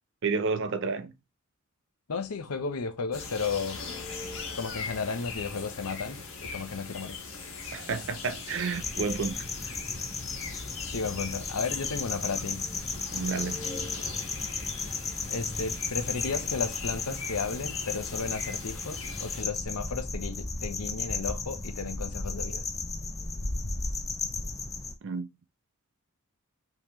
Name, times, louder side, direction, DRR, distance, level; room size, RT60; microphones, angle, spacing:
voice 1, 0.2-1.1 7.7-9.7 13.1-13.7 25.0-25.3, right 4 dB, 60° right, 0.5 m, -31 dB
voice 2, 2.1-3.8 4.6-7.2 10.9-12.6 15.3-22.6, left 5 dB, 85° left, 0.8 m, -34 dB
sound 1, 3.1-19.4, left 4 dB, 60° left, 1.5 m, -40 dB
sound 2, 8.7-24.9, left 3 dB, 15° left, 0.5 m, -35 dB
5.4 x 3.0 x 3.0 m
head